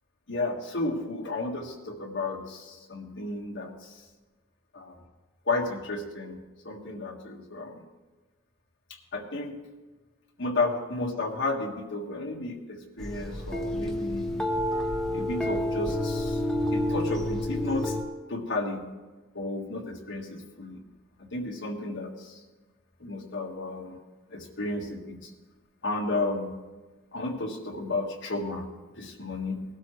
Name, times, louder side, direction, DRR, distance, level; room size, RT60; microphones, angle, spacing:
voice 1, 0.3-3.7 4.7-4.9 5.5-6.4 6.6-7.8 9.1-9.6 10.4-14.3 15.1-16.4 16.7-17.9 18.3-18.9 19.3-20.8 21.3-22.3 23.0-24.0 24.3-25.2 25.8-26.5 27.1-28.7 29.0-29.6, left 2 dB, 60° left, 1 dB, 1.7 m, -32 dB
sound 1, 13.0-18.0, left 1 dB, 5° left, 1.0 m, -29 dB
19.5 x 12.5 x 3.2 m, 1.2 s
head